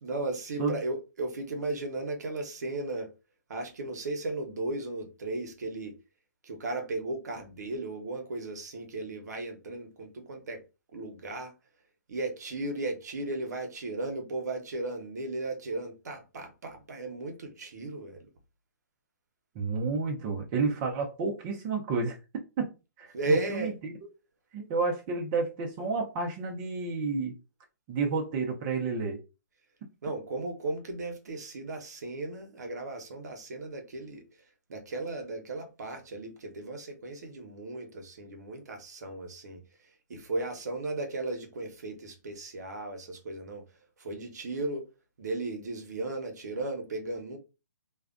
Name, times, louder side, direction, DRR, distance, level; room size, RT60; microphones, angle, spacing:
voice 1, 0.0-3.1 3.5-5.9 6.4-10.6 10.9-11.5 12.1-18.3 23.1-23.7 30.0-34.2 34.7-43.6 44.0-44.8 45.2-47.4, right 2 dB, 70° right, 0.8 m, -35 dB
voice 2, 19.5-22.2 22.6-22.7 23.0-23.9 24.5-27.4 27.9-29.2, right 4 dB, 30° right, 0.6 m, -30 dB
2.4 x 2.2 x 2.4 m
hypercardioid pair, 140°, 9 cm